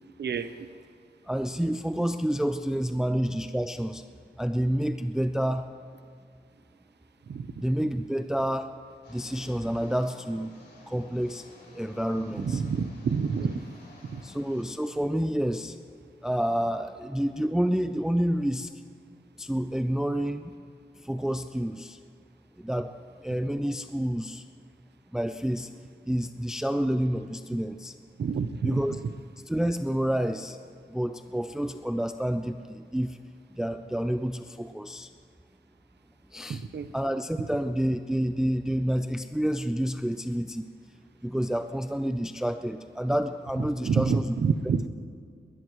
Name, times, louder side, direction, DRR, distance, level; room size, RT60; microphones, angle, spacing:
voice 1, 0.2-0.7 7.3-7.5 12.4-13.6 14.0-14.2 28.2-29.0 36.5-36.9 43.9-44.8, right 5 dB, 80° right, 11 dB, 0.7 m, -28 dB
voice 2, 1.3-4.0 4.4-5.7 7.6-8.7 9.1-10.5 10.9-11.4 11.7-12.6 14.2-15.8 16.2-18.7 19.4-20.5 21.0-22.0 22.6-23.0 23.2-24.4 25.1-25.7 26.1-28.0 28.6-29.0 29.5-30.6 30.9-33.2 33.5-35.1 36.3-36.6 36.9-40.6 41.2-44.3, equal, 5° right, 9 dB, 0.4 m, -29 dB
sound 1, 9.0-14.7, left 2 dB, 85° left, 4.1 m, -53 dB
22.0 x 19.5 x 3.1 m, 2.2 s
wide cardioid pair, 125°, 17 cm